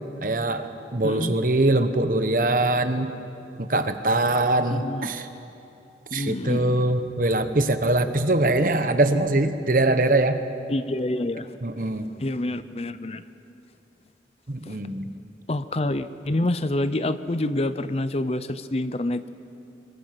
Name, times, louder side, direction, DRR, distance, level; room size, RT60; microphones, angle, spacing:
voice 1, 0.2-3.1 3.6-5.3 6.1-10.4 11.6-12.1 14.5-15.1, right 2 dB, 50° right, 9 dB, 1.1 m, -22 dB
voice 2, 1.0-1.3 4.7-5.1 6.1-6.9 10.7-11.6 12.2-13.2 14.7-14.8 15.5-19.3, left 1 dB, 35° left, 12 dB, 0.6 m, -27 dB
25.0 x 23.0 x 6.1 m, 2.8 s
head